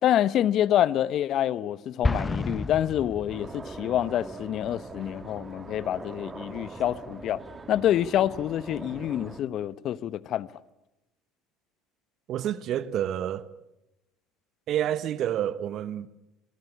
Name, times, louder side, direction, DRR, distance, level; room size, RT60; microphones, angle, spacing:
voice 1, 0.0-7.4 7.7-10.5, left 11 dB, 55° left, 1.0 m, -27 dB
Explosion, 2.0-3.9, left 2 dB, 15° left, 1.2 m, -30 dB
sound 1, 3.3-9.4, right 3 dB, 25° right, 2.6 m, -42 dB
voice 2, 12.3-13.5 14.7-16.1, right 11 dB, 55° right, 1.3 m, -29 dB
27.5 x 22.5 x 8.6 m
hypercardioid pair, 65°, 0 cm